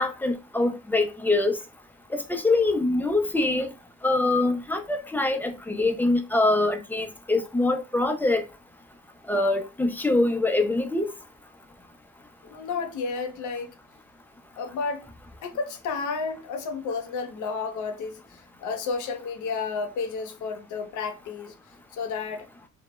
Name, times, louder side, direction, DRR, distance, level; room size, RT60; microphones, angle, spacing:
voice 1, 0.0-1.6 2.1-3.7 4.0-8.4 9.3-11.1, left 2 dB, 5° left, 0.3 m, -24 dB
voice 2, 12.4-13.7 14.6-15.1 15.4-21.5 21.9-22.5, left 4 dB, 75° left, 0.6 m, -32 dB
2.2 x 2.0 x 3.0 m
cardioid pair, 90°, 30 cm